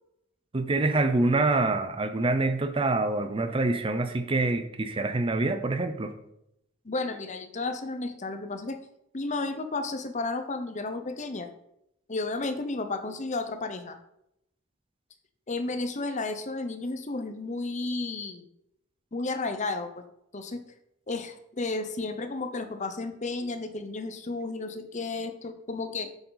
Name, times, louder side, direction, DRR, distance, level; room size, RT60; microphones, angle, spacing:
voice 1, 0.5-6.2, right 2 dB, 25° right, 9 dB, 0.5 m, -26 dB
voice 2, 6.8-8.8 9.1-11.5 12.1-14.0 15.5-18.4 19.1-19.9 20.3-20.6 21.1-26.1, left 3 dB, 35° left, 8 dB, 0.8 m, -32 dB
7.7 x 6.9 x 4.0 m, 0.81 s
head